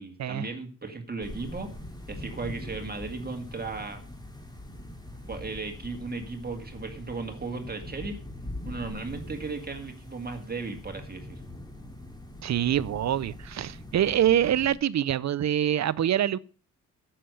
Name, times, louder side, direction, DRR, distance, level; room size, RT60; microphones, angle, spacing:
voice 1, 0.0-1.7 2.1-4.0 5.3-8.2 8.6-11.4, right 3 dB, 30° right, 2.0 m, -36 dB
sound 1, 1.2-14.8, left 1 dB, 15° left, 2.9 m, -42 dB
voice 2, 12.4-16.4, right 10 dB, 60° right, 0.6 m, -25 dB
10.0 x 7.5 x 6.4 m
cardioid pair, 90°, 32 cm